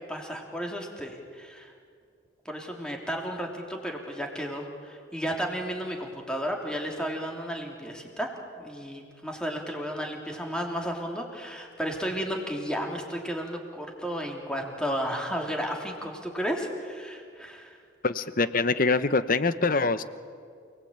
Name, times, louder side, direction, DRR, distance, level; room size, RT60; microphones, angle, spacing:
voice 1, 0.1-1.7 2.4-8.3 8.6-17.8, equal, 5° left, 1 dB, 3.2 m, -33 dB
voice 2, 18.0-20.0, left 3 dB, 45° left, 13 dB, 1.0 m, -24 dB
29.0 x 19.5 x 8.9 m, 2.3 s
head